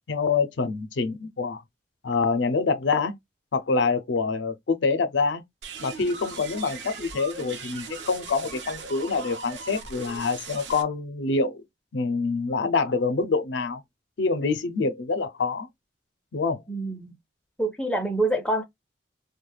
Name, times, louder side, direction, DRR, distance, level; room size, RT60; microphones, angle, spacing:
voice 1, 0.1-1.6 2.0-3.1 3.5-5.4 5.8-11.6 11.9-13.8 14.2-15.7 16.3-16.6, left 4 dB, 75° left, 0.5 m, -26 dB
sound 1, 5.6-10.8, right 4 dB, 75° right, 0.7 m, -39 dB
voice 2, 16.7-17.1 17.6-18.6, right 1 dB, 5° left, 0.4 m, -26 dB
2.3 x 2.1 x 3.1 m
head